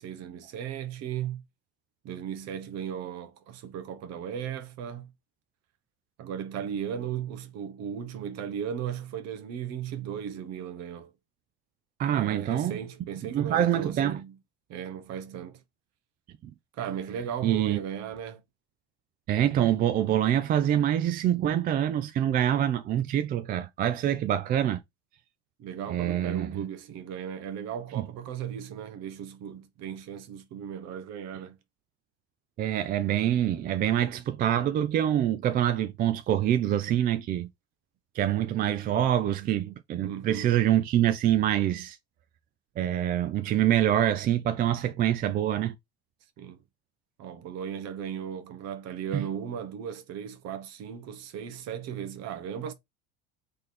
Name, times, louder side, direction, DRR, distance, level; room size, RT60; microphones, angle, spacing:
voice 1, 0.0-1.4 2.0-5.1 6.2-11.1 12.1-14.4 14.7-15.6 16.7-18.4 25.6-31.6 40.0-40.6 46.4-46.6 47.2-52.7, right 8 dB, 50° right, 1.0 m, -36 dB
voice 2, 12.0-12.8 13.3-14.2 16.4-16.5 17.4-17.8 19.3-24.8 25.9-26.5 28.0-28.1 32.6-37.5 38.1-42.0 42.8-45.7 49.1-49.3, right 11 dB, 30° right, 0.4 m, -25 dB
3.9 x 3.3 x 4.1 m
cardioid pair, 145°, 33 cm